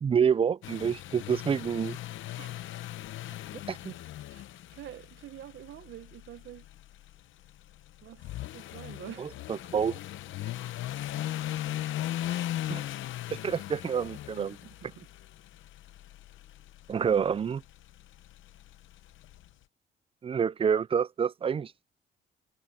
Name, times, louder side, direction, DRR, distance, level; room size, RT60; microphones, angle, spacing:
voice 1, 0.0-2.0 3.7-3.9 9.2-10.0 12.7-12.9 13.3-14.6 16.9-17.6 20.2-21.7, right 7 dB, 30° right, 0.4 m, -28 dB
sound 1, 0.6-19.5, left 13 dB, 80° left, 0.8 m, -39 dB
voice 2, 4.7-6.7 8.0-8.3 8.5-9.3 14.6-15.1, right 12 dB, 70° right, 1.3 m, -46 dB
cardioid pair, 90°, 20 cm